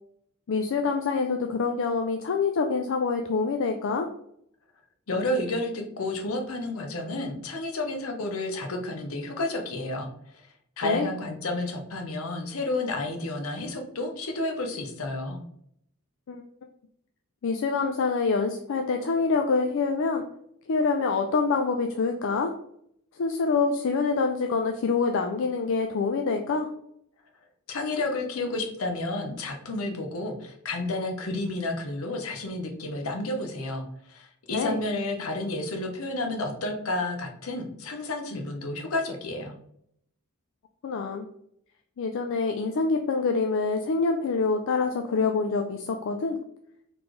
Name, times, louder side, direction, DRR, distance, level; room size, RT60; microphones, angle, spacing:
voice 1, 0.5-4.1 10.8-11.1 16.3-16.4 17.4-20.2 20.7-22.5 23.2-26.7 34.5-34.8 40.8-41.3 42.0-46.4, left 4 dB, 65° left, 4 dB, 0.4 m, -26 dB
voice 2, 5.1-15.4 27.7-39.5, left 2 dB, 80° left, 3 dB, 0.8 m, -31 dB
4.1 x 3.2 x 3.1 m, 0.71 s
head